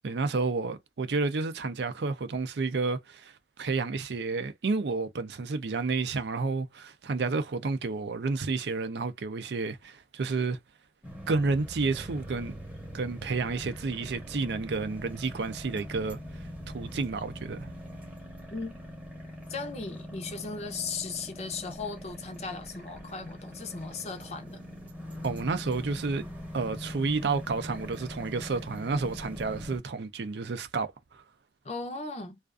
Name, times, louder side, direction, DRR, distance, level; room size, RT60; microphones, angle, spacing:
voice 1, 0.0-3.3 3.6-10.6 11.3-12.5 12.9-16.2 16.7-17.7 25.2-26.2 26.5-31.2, right 4 dB, 75° right, 0.5 m, -30 dB
sound 1, 11.0-29.8, equal, 10° right, 0.8 m, -42 dB
voice 2, 19.5-24.6 31.6-32.4, left 4 dB, 40° left, 0.5 m, -37 dB
2.4 x 2.4 x 2.3 m
head